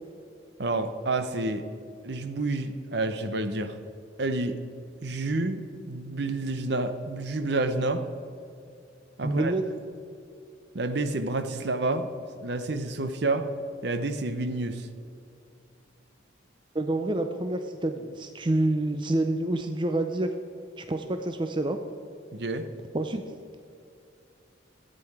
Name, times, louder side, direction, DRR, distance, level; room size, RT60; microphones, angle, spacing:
voice 1, 0.6-1.6 2.0-3.8 4.2-4.6 5.0-8.1 9.2-9.5 10.7-12.1 12.4-13.5 13.8-14.9 22.3-22.7, right 2 dB, 60° right, 9 dB, 0.8 m, -29 dB
voice 2, 9.2-9.6 16.7-20.3 20.8-21.8 22.9-23.2, right 1 dB, 25° right, 6 dB, 0.5 m, -27 dB
13.5 x 8.7 x 4.8 m, 2.6 s
head